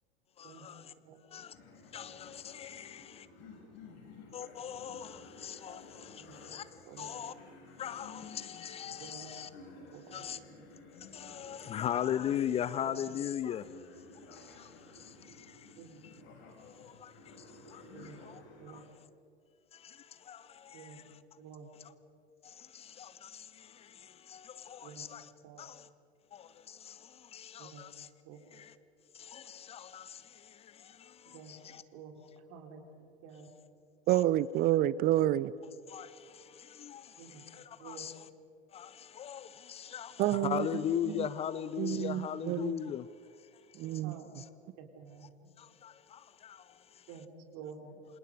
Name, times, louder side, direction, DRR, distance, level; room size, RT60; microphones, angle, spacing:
voice 1, 0.4-0.9 1.3-1.5 1.9-3.3 4.3-6.7 7.0-7.4 7.8-9.5 10.1-10.4 11.0-13.7 14.3-16.2 16.6-18.4 18.7-18.9 19.7-21.2 21.7-21.9 22.4-25.3 25.6-25.9 26.3-28.1 28.5-28.8 29.1-31.8 34.1-34.2 35.9-38.3 38.7-43.1 43.7-44.0 44.3-44.5 45.2-45.3 45.6-47.2, left 10 dB, 20° left, 17 dB, 0.5 m, -40 dB
sound 1, 1.5-18.8, left 3 dB, 45° left, 5.8 m, -54 dB
voice 2, 9.0-9.4 9.9-10.3 10.5-10.6 12.8-13.0 15.8-16.0 17.9-18.2 18.6-18.8 20.7-21.0 21.4-21.7 24.8-25.1 25.4-25.7 27.6-27.8 28.3-28.4 31.3-31.5 31.9-32.2 32.5-33.5 37.2-37.4 37.8-38.1 44.0-44.3 44.8-45.3 47.1-47.2 47.5-48.0, right 7 dB, 45° right, 4 dB, 3.7 m, -50 dB
voice 3, 34.1-35.5 40.2-40.7 41.8-42.7 43.8-44.2, right 14 dB, 30° right, 20 dB, 0.7 m, -28 dB
28.5 x 26.0 x 5.1 m, 2.4 s
figure-of-eight pair, 90°, 33 cm